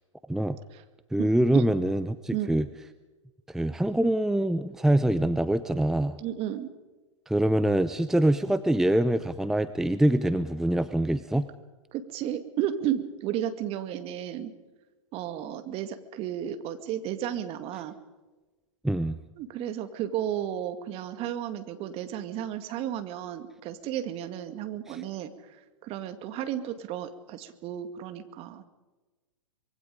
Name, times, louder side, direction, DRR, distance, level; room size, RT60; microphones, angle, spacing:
voice 1, 1.1-2.7 3.5-6.2 7.3-11.5 18.8-19.2 24.9-25.0, right 1 dB, 5° right, 12 dB, 0.7 m, -24 dB
voice 2, 6.2-6.7 11.9-14.5 15.1-17.9 19.4-25.3 25.8-28.7, right 11 dB, 35° right, 9 dB, 2.2 m, -33 dB
25.0 x 23.0 x 5.2 m, 1.2 s
hypercardioid pair, 110°, 17 cm